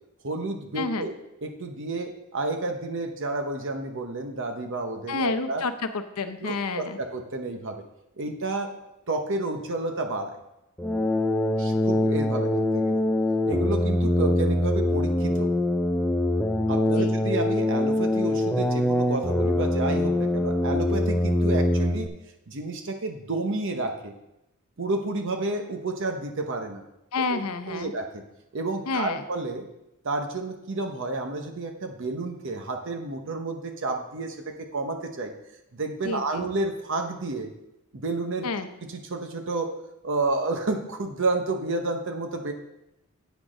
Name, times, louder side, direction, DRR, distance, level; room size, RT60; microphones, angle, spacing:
voice 1, 0.2-1.1 1.4-5.6 6.4-7.8 8.2-8.7 9.1-10.4 11.6-13.0 13.4-15.5 16.7-22.1 22.5-24.1 24.8-26.8 27.3-27.4 27.7-28.2 28.5-29.6 30.0-35.3 35.7-37.5 37.9-38.5 38.9-39.7 40.0-42.5, right 2 dB, 60° right, 4 dB, 0.9 m, -30 dB
voice 2, 0.8-1.1 5.1-7.0 17.0-17.2 27.1-27.9 28.9-29.2 36.0-36.5 38.4-38.7, left 4 dB, 85° left, 9 dB, 0.7 m, -29 dB
sound 1, 10.8-22.1, left 1 dB, 5° left, 0.5 m, -24 dB
8.3 x 6.2 x 5.1 m, 0.89 s
head